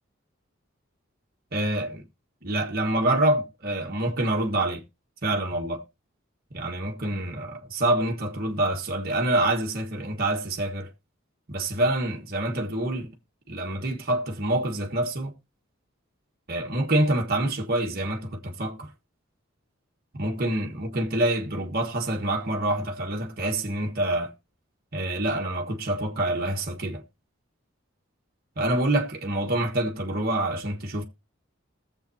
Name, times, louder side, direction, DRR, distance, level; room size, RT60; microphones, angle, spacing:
voice 1, 1.5-2.0 2.4-4.8 5.2-5.8 6.5-10.9 11.5-13.1 13.5-15.3 16.5-18.9 20.1-24.3 24.9-27.0 28.6-31.0, right 1 dB, 50° right, 1.4 m, -26 dB
20.5 x 7.4 x 2.8 m
head